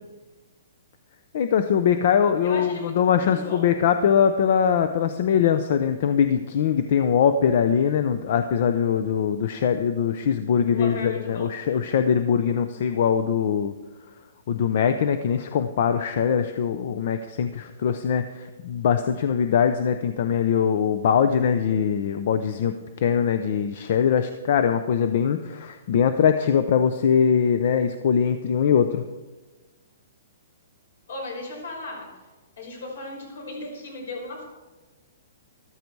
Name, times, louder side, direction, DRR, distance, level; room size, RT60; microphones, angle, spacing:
voice 1, 1.3-13.7 14.5-29.0, left 7 dB, 40° left, 9 dB, 0.6 m, -22 dB
voice 2, 2.4-3.7 10.7-11.8 31.1-32.2 32.6-34.4, left 2 dB, 65° left, 1 dB, 5.6 m, -36 dB
13.5 x 13.0 x 4.6 m, 1.2 s
hypercardioid pair, 175°, 0 cm